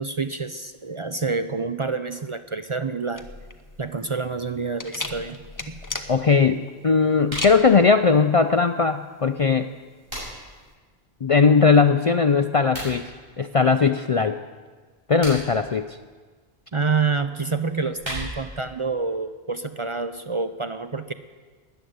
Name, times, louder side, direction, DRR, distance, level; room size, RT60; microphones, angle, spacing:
voice 1, 0.0-3.2 3.8-5.4 5.7-5.8 16.7-21.1, right 4 dB, 40° right, 10 dB, 0.5 m, -27 dB
sound 1, 3.1-10.7, left 2 dB, 20° left, 0.8 m, -37 dB
voice 2, 6.1-9.7 11.2-13.1 13.4-14.4 15.1-16.0, left 5 dB, 45° left, 9 dB, 0.4 m, -19 dB
sound 2, 7.2-7.6 9.6-10.6 12.6-12.9 15.0-15.6 17.6-18.6, equal, 60° right, 7.0 m, -35 dB
14.0 x 10.0 x 9.4 m, 1.5 s
omnidirectional pair, 1.1 m